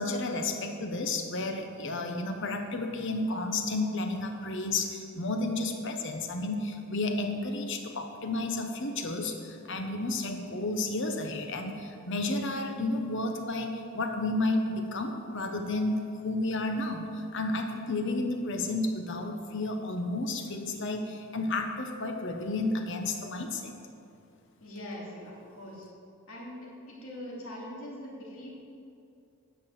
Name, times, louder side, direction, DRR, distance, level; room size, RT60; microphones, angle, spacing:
voice 1, 0.0-23.7, left 2 dB, 60° left, 5 dB, 1.1 m, -32 dB
voice 2, 24.6-25.9 26.3-28.5, left 1 dB, 80° left, -4 dB, 2.7 m, -42 dB
9.8 x 6.1 x 7.3 m, 2.5 s
head